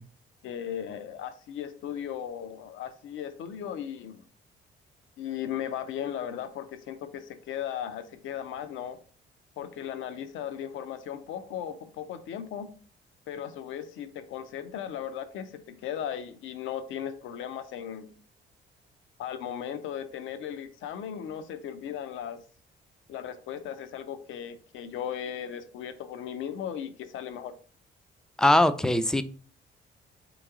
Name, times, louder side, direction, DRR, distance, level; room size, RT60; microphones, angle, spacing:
voice 1, 0.4-4.2 5.2-9.0 9.6-12.7 13.3-18.1 19.2-22.4 23.1-27.5, left 9 dB, 80° left, 0.6 m, -37 dB
voice 2, 28.4-29.2, left 1 dB, 5° left, 0.3 m, -21 dB
4.5 x 3.1 x 3.6 m
cardioid pair, 90°, 20 cm